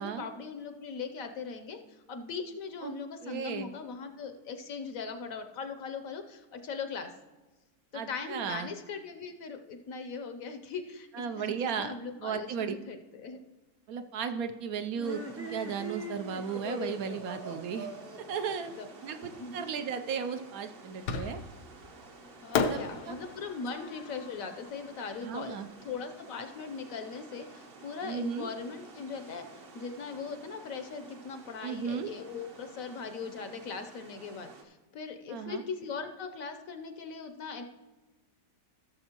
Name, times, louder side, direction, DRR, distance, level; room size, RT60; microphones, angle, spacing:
voice 1, 0.0-7.1 7.9-13.4 18.7-18.9 19.2-19.6 22.4-37.6, left 5 dB, 65° left, 7 dB, 1.0 m, -40 dB
voice 2, 3.2-3.7 7.9-8.7 11.1-11.9 12.2-12.7 13.9-17.9 18.3-21.4 22.7-22.8 23.1-23.2 25.2-25.7 28.0-28.5 31.6-32.1 35.3-35.6, right 7 dB, 70° right, 8 dB, 1.0 m, -35 dB
sound 1, 14.9-19.6, equal, 15° right, 0.4 m, -41 dB
sound 2, 15.0-34.6, right 3 dB, 45° right, 0.9 m, -52 dB
Fireworks, 21.1-21.7 22.5-25.7, left 5 dB, 85° left, 1.3 m, -34 dB
16.0 x 6.9 x 2.9 m, 1.2 s
omnidirectional pair, 1.7 m